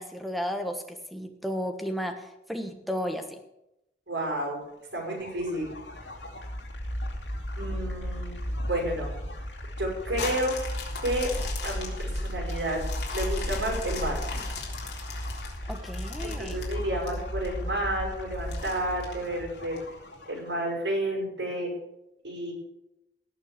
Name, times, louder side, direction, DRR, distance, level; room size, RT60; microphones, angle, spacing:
voice 1, 0.0-3.4 15.7-16.6, equal, ahead, 4 dB, 1.2 m, -33 dB
voice 2, 4.1-4.6 4.9-5.6 7.6-9.1 9.8-10.5 11.0-11.3 11.6-12.8 13.1-14.2 16.2-19.8 20.3-21.7 22.2-22.5, right 1 dB, 90° right, -1 dB, 6.1 m, -31 dB
sound 1, 4.9-20.6, equal, 85° left, 3.0 m, -35 dB
sound 2, 10.2-17.5 17.9-18.0 18.5-19.8 20.3-20.4, left 5 dB, 65° left, 3.5 m, -39 dB
18.0 x 6.4 x 6.7 m, 0.88 s
head